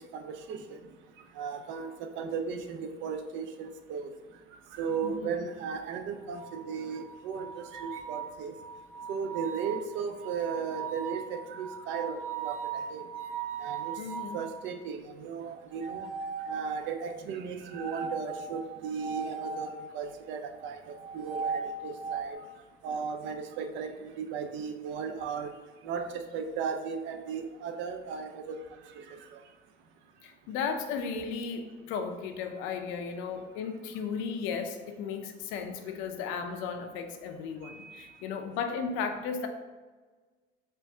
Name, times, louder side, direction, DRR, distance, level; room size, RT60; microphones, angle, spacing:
voice 1, 0.1-0.8 1.4-4.1 4.7-8.5 9.1-13.0 13.6-14.0 14.3-16.1 16.5-20.8 21.1-22.4 22.8-25.5 25.8-28.6 28.9-29.4 37.6-38.1, right 6 dB, 70° right, 7 dB, 0.5 m, -36 dB
voice 2, 5.0-5.3 14.0-14.4 30.2-39.5, left 6 dB, 80° left, 6 dB, 0.6 m, -35 dB
sound 1, 6.4-14.5 15.7-17.0 17.7-19.7 20.9-22.3, right 5 dB, 30° right, 0.9 m, -38 dB
4.4 x 2.6 x 3.4 m, 1.3 s
cardioid pair, 140°, 20 cm